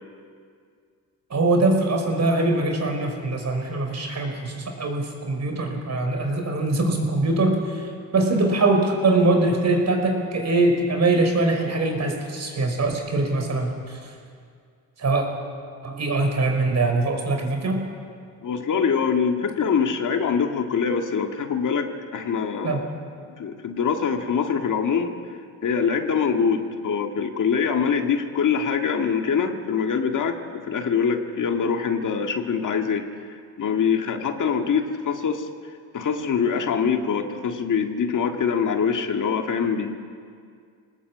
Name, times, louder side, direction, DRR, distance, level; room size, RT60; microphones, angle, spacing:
voice 1, 1.3-14.1 15.0-15.3 15.8-17.8 22.6-22.8, right 2 dB, 45° right, 3 dB, 5.1 m, -22 dB
voice 2, 18.4-22.9 23.4-25.2 25.6-35.5 35.9-39.9, left 6 dB, 55° left, 4 dB, 1.9 m, -24 dB
25.0 x 19.0 x 8.6 m, 2.2 s
cardioid pair, 110°, 37 cm